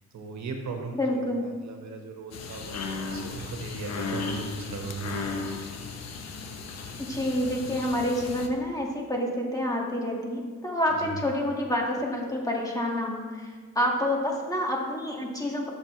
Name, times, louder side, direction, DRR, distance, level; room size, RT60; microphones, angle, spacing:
voice 1, 0.1-5.5 11.0-11.2, right 4 dB, 65° right, 3 dB, 1.5 m, -38 dB
voice 2, 0.9-1.5 7.0-15.7, left 1 dB, 10° left, -2 dB, 2.1 m, -28 dB
sound 1, 2.3-8.5, left 4 dB, 60° left, 1.1 m, -35 dB
13.0 x 6.9 x 3.3 m, 1.5 s
cardioid pair, 90°, 30 cm